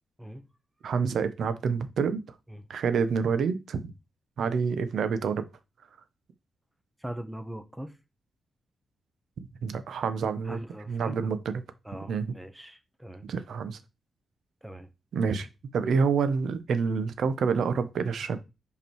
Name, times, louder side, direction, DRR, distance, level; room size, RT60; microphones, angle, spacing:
voice 1, 0.8-2.2 2.7-3.9 4.4-5.4 9.6-10.6 10.9-11.6 12.1-12.3 13.2-13.8 15.1-15.5 15.7-18.4, right 5 dB, 75° right, 0.8 m, -27 dB
voice 2, 7.0-7.9 10.4-11.2 11.8-13.3 14.6-14.9, right 1 dB, 5° right, 0.9 m, -40 dB
5.3 x 5.1 x 4.6 m
wide cardioid pair, 130°, 0 cm